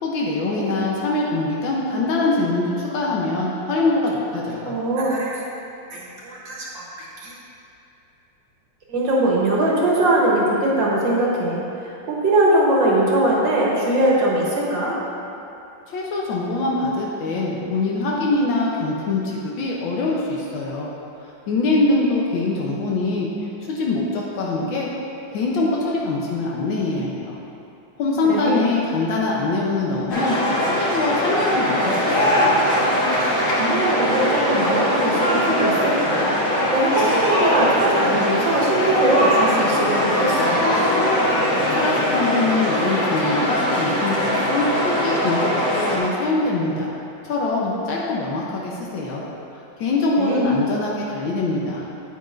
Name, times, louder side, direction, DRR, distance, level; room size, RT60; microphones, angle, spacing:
voice 1, 0.0-4.7 15.9-20.9 21.5-23.3 23.7-24.9 25.3-27.4 28.0-30.4 30.7-32.5 41.5-46.9 47.2-49.2 49.8-51.8, left 2 dB, 80° left, -3 dB, 1.6 m, -23 dB
voice 2, 4.7-5.4 5.9-7.4 8.9-15.0 28.3-28.7 33.5-40.7 50.2-50.5, right 1 dB, 70° right, -4 dB, 1.8 m, -21 dB
sound 1, 30.1-46.0, equal, 45° left, 1.5 m, -21 dB
9.4 x 8.6 x 2.6 m, 2.7 s
omnidirectional pair, 2.1 m